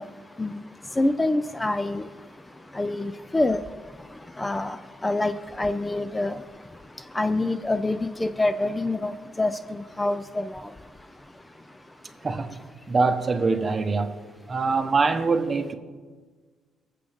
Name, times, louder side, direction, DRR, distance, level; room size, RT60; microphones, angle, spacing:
voice 1, 0.0-12.0, left 2 dB, 15° left, 0.4 m, -28 dB
voice 2, 12.2-12.5 12.9-14.1 14.5-15.7, right 4 dB, 35° right, 1.1 m, -23 dB
22.5 x 7.6 x 3.6 m
cardioid pair, 90°, 0 cm